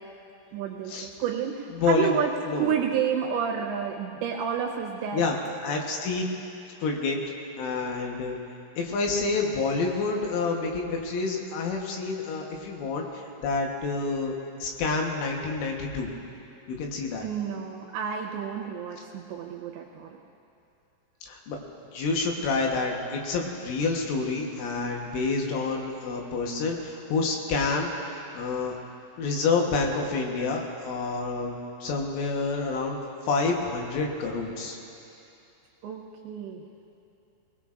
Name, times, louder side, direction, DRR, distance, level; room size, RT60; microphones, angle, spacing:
voice 1, 0.5-2.3 2.6-5.2 17.2-20.1 35.8-36.6, right 8 dB, 75° right, -1 dB, 2.8 m, -30 dB
voice 2, 1.7-2.2 2.5-2.8 5.1-6.3 6.8-7.2 7.6-8.4 8.8-14.3 14.6-16.1 16.7-17.3 21.2-21.6 21.9-28.8 29.2-31.5 31.8-33.0 33.3-34.8, left 4 dB, 75° left, 1 dB, 3.6 m, -28 dB
20.5 x 20.0 x 2.5 m, 2.7 s
omnidirectional pair, 5.9 m